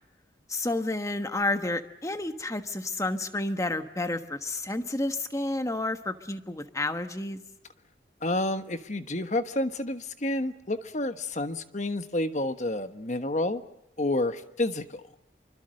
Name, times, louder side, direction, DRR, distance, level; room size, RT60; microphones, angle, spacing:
voice 1, 0.5-7.4, left 2 dB, 15° left, 8 dB, 1.3 m, -30 dB
voice 2, 8.2-13.6 14.0-15.0, left 1 dB, 40° left, 9 dB, 1.3 m, -29 dB
26.0 x 24.5 x 6.6 m, 0.85 s
head